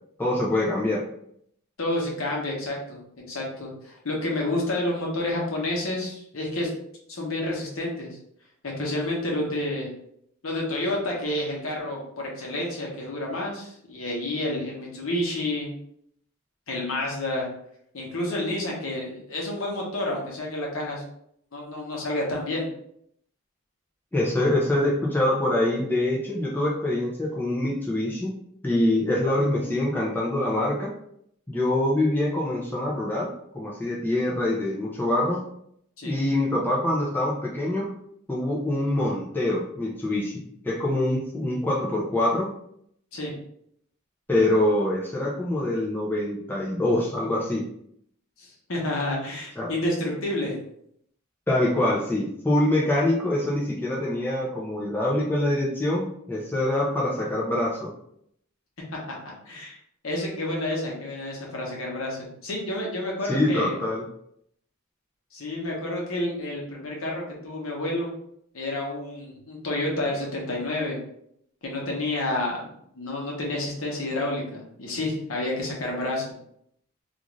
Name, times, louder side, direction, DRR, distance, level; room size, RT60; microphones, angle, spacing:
voice 1, 0.2-1.0 24.1-28.3 28.6-30.9 31.5-33.3 33.5-35.4 36.0-37.9 38.3-42.5 44.3-47.6 49.6-49.7 51.5-57.9 63.2-64.0, left 1 dB, 10° left, -4 dB, 0.4 m, -25 dB
voice 2, 1.8-3.0 3.3-6.7 7.1-8.2 8.6-9.9 10.4-15.7 16.7-17.5 17.9-21.0 21.5-22.7 36.0-36.2 43.1-43.3 48.4-50.6 59.5-59.8 60.0-63.7 65.3-68.1 68.5-71.0 71.6-72.7 72.9-76.3, left 1 dB, 70° left, -2 dB, 0.9 m, -29 dB
2.5 x 2.4 x 3.1 m, 0.71 s
head